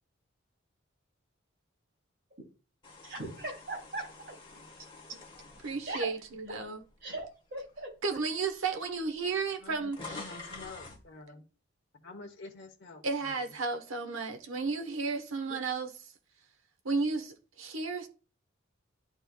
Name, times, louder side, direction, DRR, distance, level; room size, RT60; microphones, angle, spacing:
sound 1, 2.8-7.1 7.6-7.8 8.7-8.8 9.0-11.1, left 3 dB, 25° left, 1.3 m, -48 dB
voice 1, 3.0-4.1 5.9-6.1 6.5-6.6 7.0-7.2 7.5-7.9 15.5-15.6, right 2 dB, 50° right, 3.0 m, -38 dB
voice 2, 5.6-6.8 8.0-10.2 13.0-15.9 16.8-18.1, right 4 dB, 80° right, 1.2 m, -33 dB
voice 3, 9.6-11.4 12.0-13.5, left 3 dB, 60° left, 1.1 m, -48 dB
11.5 x 4.4 x 2.3 m
head